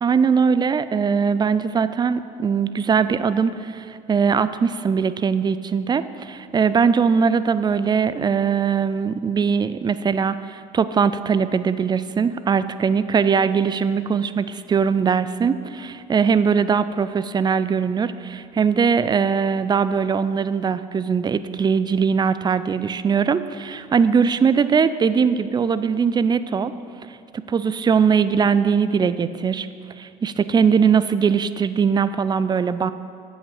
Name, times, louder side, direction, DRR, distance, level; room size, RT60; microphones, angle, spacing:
voice 1, 0.0-26.7 27.3-29.7 30.0-32.9, right 6 dB, 20° right, 14 dB, 0.4 m, -21 dB
8.2 x 5.7 x 6.8 m, 2.4 s
hypercardioid pair, 60°, 20 cm